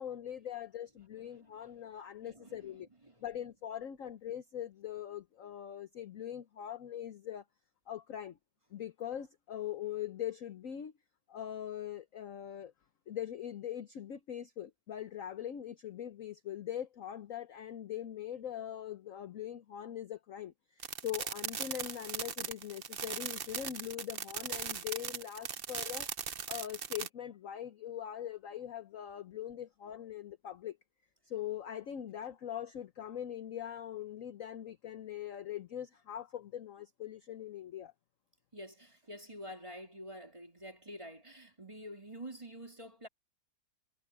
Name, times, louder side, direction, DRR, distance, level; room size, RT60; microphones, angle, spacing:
voice 1, 0.0-2.9 3.2-7.4 7.9-8.4 8.7-10.9 11.3-12.7 13.1-26.1 26.5-30.8 31.3-37.9, left 10 dB, 55° left, 1.0 m, -42 dB
voice 2, 1.3-1.8 2.2-2.7 3.0-3.3 38.5-43.1, equal, 15° right, 3.1 m, -48 dB
sound 1, 20.8-27.1, right 7 dB, 50° right, 0.7 m, -39 dB
omnidirectional pair, 2.1 m